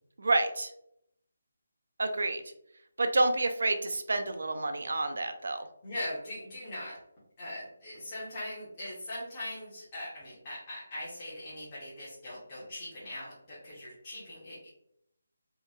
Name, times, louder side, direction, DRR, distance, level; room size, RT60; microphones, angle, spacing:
voice 1, 0.2-0.7 2.0-2.4 3.0-5.7, right 2 dB, 70° right, 7 dB, 0.3 m, -29 dB
voice 2, 5.8-7.0 7.4-14.7, left 1 dB, 20° left, -9 dB, 0.7 m, -41 dB
2.8 x 2.1 x 2.3 m, 0.74 s
hypercardioid pair, 170°, 0 cm